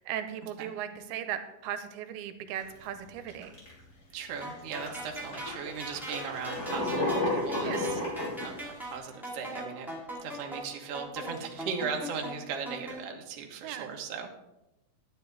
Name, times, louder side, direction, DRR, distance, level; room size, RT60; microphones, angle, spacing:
voice 1, 0.0-3.5 7.6-7.9 13.6-13.9, right 10 dB, 90° right, 9 dB, 2.6 m, -37 dB
sound 1, 2.6-2.8 3.3-3.8 4.4-4.5 4.9-8.9, left 1 dB, 25° left, 2.8 m, -32 dB
voice 2, 4.1-8.0 8.4-9.9 10.2-14.3, right 6 dB, 60° right, 2 dB, 1.6 m, -38 dB
sound 2, 4.4-13.0, right 1 dB, ahead, 1.8 m, -41 dB
11.5 x 9.5 x 4.0 m, 0.93 s
omnidirectional pair, 4.4 m